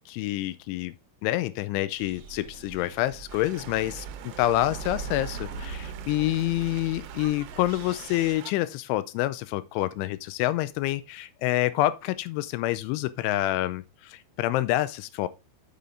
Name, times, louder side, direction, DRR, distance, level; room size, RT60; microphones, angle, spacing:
voice 1, 0.1-0.9 1.2-15.3, left 15 dB, 85° left, 3.0 m, -27 dB
sound 1, 2.0-8.4, right 5 dB, 65° right, 3.2 m, -40 dB
sound 2, 3.3-8.5, right 11 dB, 85° right, 3.4 m, -46 dB
6.9 x 6.7 x 3.7 m
omnidirectional pair, 5.4 m